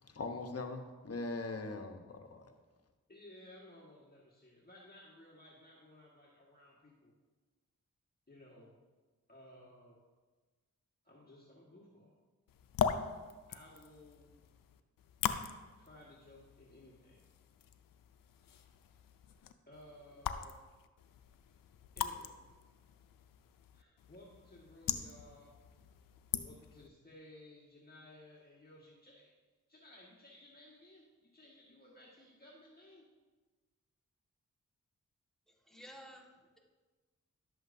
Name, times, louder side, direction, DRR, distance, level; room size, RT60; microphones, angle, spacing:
voice 1, 0.0-2.5, left 3 dB, 50° left, 5 dB, 1.1 m, -41 dB
voice 2, 3.1-7.1 8.3-8.8 9.3-10.0 11.0-12.1 13.5-14.3 15.8-17.2 18.5-18.6 19.7-20.5 22.0-22.4 23.7-25.5 26.4-29.3 29.7-33.1, left 1 dB, 30° left, -4 dB, 1.8 m, -58 dB
sound 1, 12.5-26.9, left 8 dB, 90° left, 0.5 m, -41 dB
voice 3, 35.5-36.6, equal, ahead, -1 dB, 1.8 m, -54 dB
11.5 x 7.7 x 2.7 m, 1.3 s
cardioid pair, 40°, 32 cm